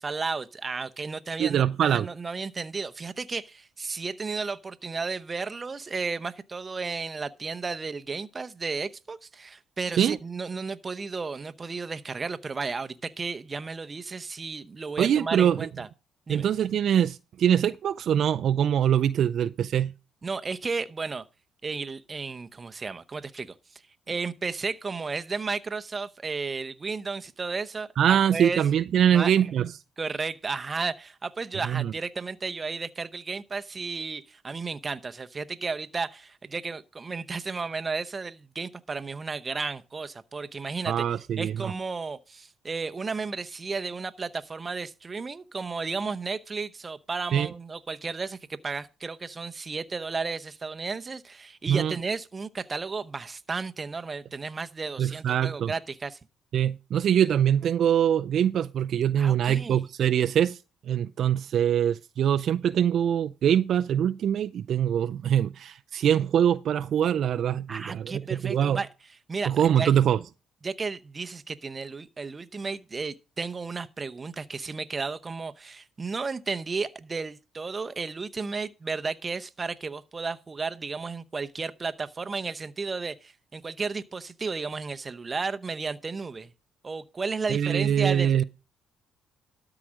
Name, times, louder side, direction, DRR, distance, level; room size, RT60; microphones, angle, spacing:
voice 1, 0.0-15.9 16.3-16.4 20.2-21.2 21.6-23.8 24.1-28.6 29.1-29.3 30.0-41.0 41.4-56.2 59.2-59.8 67.7-68.9 69.3-69.9 70.6-86.5 86.8-88.4, right 4 dB, 30° right, 0.8 m, -33 dB
voice 2, 1.4-2.1 10.0-10.2 15.0-15.7 16.3-19.9 28.0-29.7 31.6-31.9 40.9-41.7 47.3-47.5 51.7-51.9 55.0-55.7 56.5-60.6 60.9-68.8 69.5-70.2 87.5-88.4, right 9 dB, 60° right, 0.4 m, -23 dB
13.0 x 4.9 x 6.3 m
supercardioid pair, 75°, 0 cm